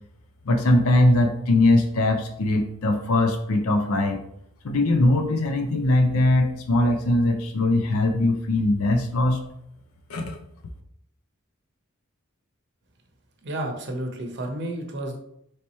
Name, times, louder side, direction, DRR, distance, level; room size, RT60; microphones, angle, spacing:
voice 1, 0.5-4.2 4.6-9.4 10.1-10.4, left 2 dB, 80° left, 6 dB, 0.5 m, -21 dB
voice 2, 13.4-15.2, right 1 dB, 55° right, 3 dB, 0.7 m, -31 dB
3.2 x 2.9 x 4.2 m, 0.75 s
head